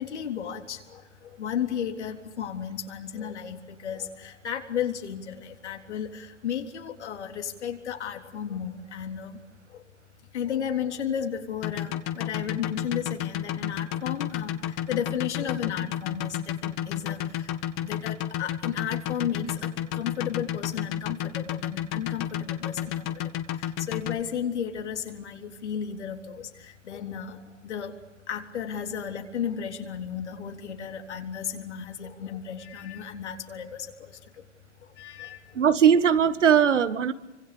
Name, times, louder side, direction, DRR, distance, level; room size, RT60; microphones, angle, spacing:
voice 1, 0.0-9.4 9.7-9.8 10.3-17.5 17.8-27.9 28.3-34.4 34.8-35.6, left 8 dB, 70° left, 3 dB, 3.7 m, -34 dB
sound 1, 11.6-24.2, left 11 dB, 35° left, 1.8 m, -30 dB
voice 2, 35.6-37.1, right 8 dB, 80° right, 12 dB, 1.7 m, -19 dB
29.0 x 25.0 x 6.8 m, 1.0 s
hypercardioid pair, 125°, 36 cm